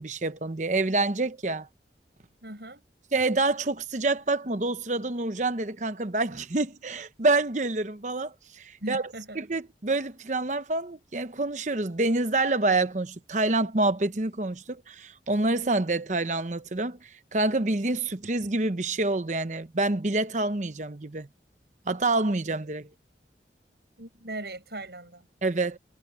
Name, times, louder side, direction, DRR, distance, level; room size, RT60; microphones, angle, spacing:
voice 1, 0.0-1.7 3.1-9.0 9.4-21.3 21.9-22.9 25.4-25.8, right 2 dB, 40° right, 0.9 m, -27 dB
voice 2, 2.4-2.8 8.8-9.4 24.0-25.3, right 1 dB, 65° right, 7.4 m, -39 dB
head